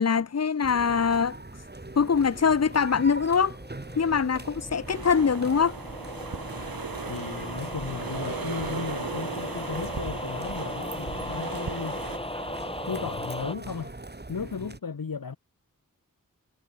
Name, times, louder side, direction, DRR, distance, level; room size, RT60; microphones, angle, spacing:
voice 1, 0.0-1.4 2.0-3.6 4.0-5.8, left 6 dB, 45° left, 0.8 m, -23 dB
sound 1, 0.6-14.8, right 2 dB, 30° right, 2.9 m, -41 dB
sound 2, 3.3-13.5, left 1 dB, 15° left, 2.4 m, -38 dB
sound 3, 4.9-12.2, right 5 dB, 80° right, 3.2 m, -37 dB
voice 2, 7.0-12.0 12.8-14.0 14.3-15.4, left 5 dB, 80° left, 1.9 m, -35 dB
wide cardioid pair, 55°, 34 cm